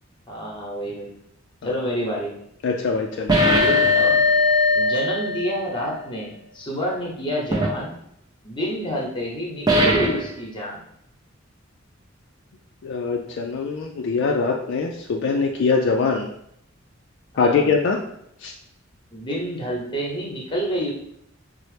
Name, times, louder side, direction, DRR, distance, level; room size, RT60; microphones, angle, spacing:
voice 1, 0.3-1.1 1.6-2.3 3.6-4.3 4.7-7.9 8.4-10.8 17.3-17.7 19.1-20.9, equal, 25° left, -2 dB, 0.9 m, -28 dB
voice 2, 2.6-3.4 12.8-16.3 17.4-18.0 18.4-18.5, left 4 dB, 60° left, 2 dB, 0.3 m, -22 dB
sound 1, 3.3-5.8 7.5-7.7 9.7-10.3, left 2 dB, 20° right, 0.4 m, -19 dB
4.1 x 2.0 x 3.2 m, 0.72 s
head